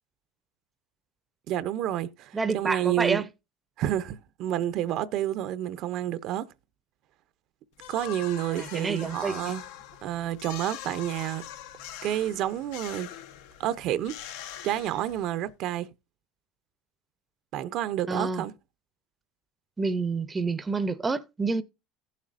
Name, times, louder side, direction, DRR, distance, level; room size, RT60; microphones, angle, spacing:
voice 1, 1.5-3.2 3.8-6.4 7.9-9.6 10.0-11.4 12.0-13.1 13.6-14.1 14.6-15.9 17.5-18.5, right 12 dB, 55° right, 0.6 m, -29 dB
voice 2, 2.3-3.2 8.5-9.5 18.1-18.4 19.8-21.6, right 4 dB, 15° right, 0.6 m, -28 dB
sound 1, 7.8-15.4, left 11 dB, 80° left, 0.9 m, -43 dB
15.5 x 7.3 x 2.5 m
supercardioid pair, 135°, 0 cm